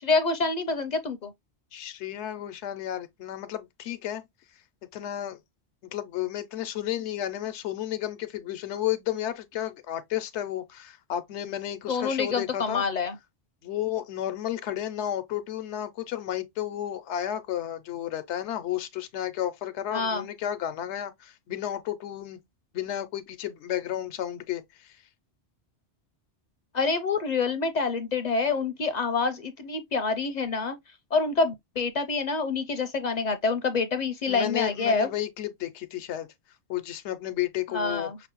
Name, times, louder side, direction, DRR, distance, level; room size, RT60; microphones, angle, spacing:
voice 1, 0.0-1.3 11.9-13.2 19.9-20.3 26.7-30.8 31.1-35.1 37.7-38.2, left 4 dB, 55° left, 0.5 m, -27 dB
voice 2, 1.7-4.2 4.9-5.4 5.9-12.8 13.6-22.4 22.7-25.0 34.3-36.3 36.7-38.1, left 12 dB, 90° left, 0.9 m, -32 dB
5.8 x 2.0 x 2.9 m
omnidirectional pair, 1.1 m